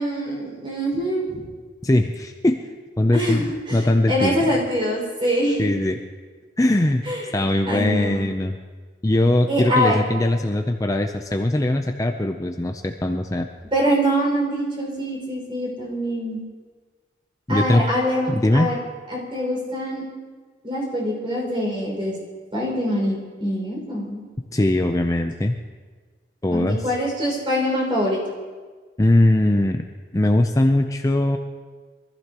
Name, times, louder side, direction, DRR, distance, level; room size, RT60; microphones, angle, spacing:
voice 1, 0.0-1.4 3.1-3.8 4.1-5.7 7.1-7.2 7.7-8.3 9.5-10.1 13.7-16.4 17.5-18.8 19.1-20.0 20.6-22.1 22.5-24.2 26.5-28.2, equal, 30° right, -4 dB, 5.7 m, -24 dB
voice 2, 1.8-2.7 3.0-3.5 3.7-4.6 5.6-6.0 6.6-7.1 7.3-8.6 9.0-13.5 17.5-17.8 18.3-18.7 24.5-25.5 26.4-26.9 29.0-29.8 30.1-31.4, left 1 dB, 20° left, 4 dB, 0.6 m, -20 dB
24.0 x 14.5 x 3.0 m, 1.5 s
head